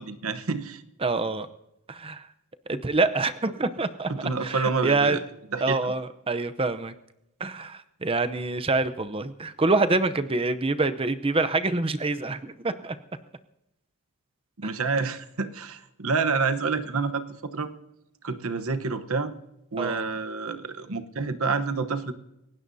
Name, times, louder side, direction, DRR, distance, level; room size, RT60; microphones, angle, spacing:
voice 1, 0.0-0.8 4.1-5.2 5.5-5.9 14.6-17.7 18.2-19.3 19.7-22.1, right 4 dB, 70° right, 9 dB, 1.0 m, -28 dB
voice 2, 1.0-1.5 1.9-2.3 2.7-5.2 5.6-6.9 7.4-13.0 14.6-14.7 19.8-20.0, right 3 dB, 25° right, 11 dB, 0.7 m, -26 dB
28.0 x 16.5 x 2.7 m, 0.89 s
head